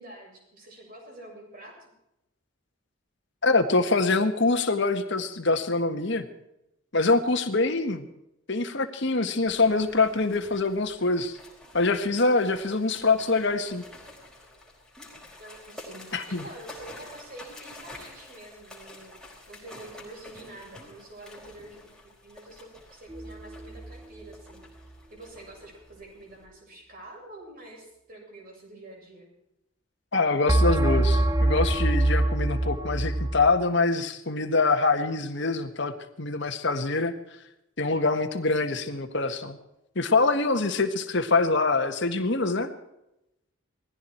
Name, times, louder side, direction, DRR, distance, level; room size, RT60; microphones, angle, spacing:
voice 1, 0.0-1.9 15.4-19.2 19.5-24.6 25.1-29.3, right 1 dB, 40° right, -1 dB, 7.0 m, -47 dB
voice 2, 3.4-6.3 6.9-8.1 8.5-11.4 11.7-13.8 16.1-16.4 30.1-37.1 37.8-39.6 39.9-42.7, left 3 dB, 55° left, 6 dB, 1.6 m, -24 dB
sound 1, 9.5-26.5, left 1 dB, 5° left, 4.4 m, -49 dB
sound 2, 23.1-24.0 30.5-33.5, right 1 dB, 15° right, 0.7 m, -24 dB
19.5 x 15.5 x 4.6 m, 0.86 s
head